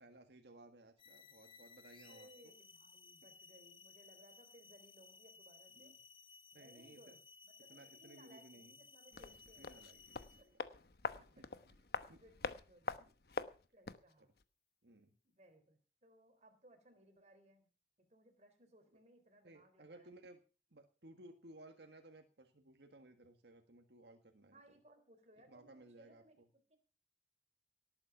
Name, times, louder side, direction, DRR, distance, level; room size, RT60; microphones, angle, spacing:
voice 1, 0.0-2.5 5.8-6.0 6.5-7.0 7.7-8.8 9.1-10.3 11.1-11.5 12.1-12.2 13.0-13.1 14.2-14.3 14.8-15.1 19.4-20.4 20.7-24.6 25.5-26.2, right 1 dB, 70° right, 5 dB, 1.7 m, -59 dB
sound 1, 1.0-10.5, left 5 dB, 30° left, 0.9 m, -60 dB
voice 2, 2.1-5.9 6.5-9.8 10.4-10.5 11.3-12.9 13.7-14.3 15.2-17.7 18.0-20.2 24.5-26.8, right 1 dB, 40° right, 6 dB, 3.5 m, -65 dB
sound 2, 9.1-14.1 14.4-14.5, left 4 dB, 60° left, 1.0 m, -44 dB
18.5 x 8.8 x 5.8 m, 0.35 s
head